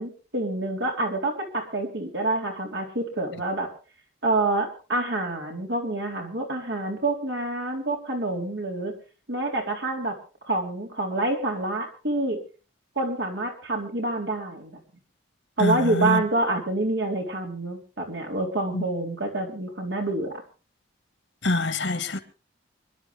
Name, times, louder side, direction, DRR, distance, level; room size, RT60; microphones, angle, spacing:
voice 1, 0.0-3.7 4.2-8.9 9.3-10.2 10.4-12.4 13.0-14.8 15.6-20.4, right 2 dB, 70° right, 3.9 m, -27 dB
voice 2, 15.6-16.2 18.7-18.8 21.4-22.2, left 2 dB, 75° left, 1.9 m, -25 dB
25.5 x 11.5 x 3.4 m
head